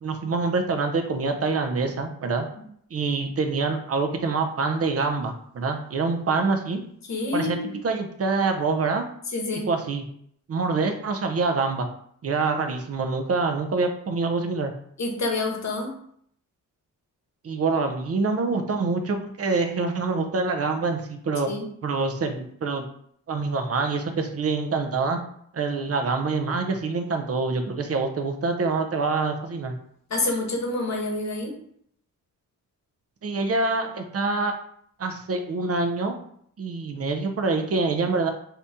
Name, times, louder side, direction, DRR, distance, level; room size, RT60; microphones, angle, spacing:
voice 1, 0.0-2.5 2.9-6.8 7.3-7.6 7.8-9.1 9.7-10.0 10.5-11.9 12.2-14.7 17.4-21.5 21.8-22.8 23.3-25.2 25.5-29.8 33.2-34.6 35.0-36.2 36.6-38.3, right 4 dB, 45° right, 6 dB, 0.6 m, -25 dB
voice 2, 7.1-7.8 9.3-9.7 15.0-15.9 21.5-21.7 30.1-31.5, left 2 dB, 50° left, 1 dB, 1.0 m, -28 dB
2.8 x 2.6 x 3.5 m, 0.66 s
cardioid pair, 65°, 35 cm